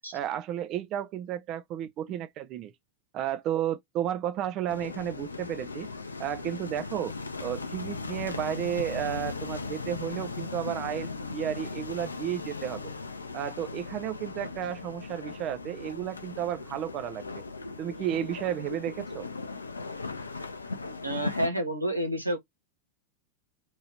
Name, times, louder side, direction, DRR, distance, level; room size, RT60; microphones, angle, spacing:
voice 1, 0.1-2.7 3.1-5.9 6.2-7.1 7.4-12.9 13.3-17.4 17.8-19.3, right 11 dB, 35° right, 0.4 m, -33 dB
sound 1, 4.7-21.5, left 4 dB, 75° left, 0.4 m, -38 dB
voice 2, 21.0-22.4, right 1 dB, 85° right, 0.9 m, -29 dB
3.0 x 2.7 x 2.7 m
figure-of-eight pair, 90°, 0 cm